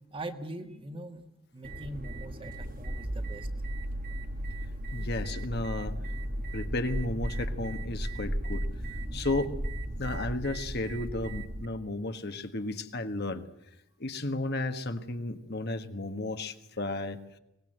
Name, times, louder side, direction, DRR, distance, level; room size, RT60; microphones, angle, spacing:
voice 1, 0.1-1.2 1.5-3.8 5.0-5.1, right 1 dB, 25° right, 7 dB, 1.6 m, -42 dB
sound 1, 1.6-11.7, right 1 dB, 40° right, 1.4 m, -35 dB
voice 2, 4.9-6.0 6.5-8.7 9.1-9.5 10.0-13.5 14.0-17.2, left 2 dB, 50° left, 8 dB, 1.6 m, -33 dB
23.5 x 20.0 x 7.9 m, 0.83 s
head